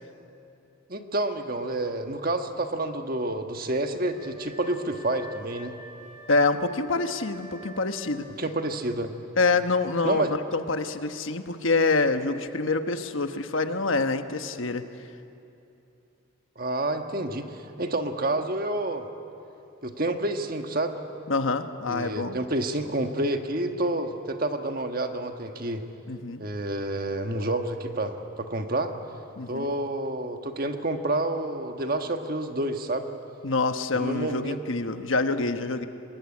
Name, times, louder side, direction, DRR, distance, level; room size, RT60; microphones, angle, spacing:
voice 1, 0.9-5.7 8.4-9.1 10.0-10.3 16.6-19.1 19.8-21.0 21.9-25.9 26.4-28.9 29.5-33.1 33.9-34.6, right 1 dB, 45° right, 5 dB, 1.4 m, -29 dB
Wind instrument woodwind instrument, 4.1-8.5, equal, 50° left, 7.4 m, -47 dB
voice 2, 6.3-8.3 9.4-14.9 21.3-22.4 26.1-26.4 29.4-29.7 33.4-35.9, left 3 dB, 75° left, 8 dB, 1.2 m, -26 dB
24.5 x 21.0 x 9.7 m, 2.8 s
head